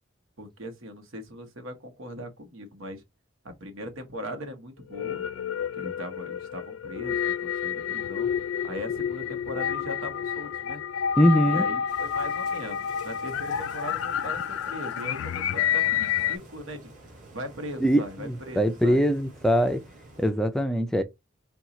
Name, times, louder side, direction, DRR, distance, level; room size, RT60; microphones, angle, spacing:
voice 1, 0.4-3.0 3.4-5.2 5.7-8.3 8.6-10.8 11.4-16.9 17.3-19.0, equal, 85° right, 1.1 m, -39 dB
sound 1, 4.8-16.4, left 8 dB, 80° left, 0.3 m, -29 dB
voice 2, 11.2-11.7 17.8-19.8 20.2-21.0, equal, 5° left, 0.4 m, -22 dB
sound 2, 11.9-20.3, right 2 dB, 40° right, 1.9 m, -50 dB
4.4 x 2.3 x 3.9 m
head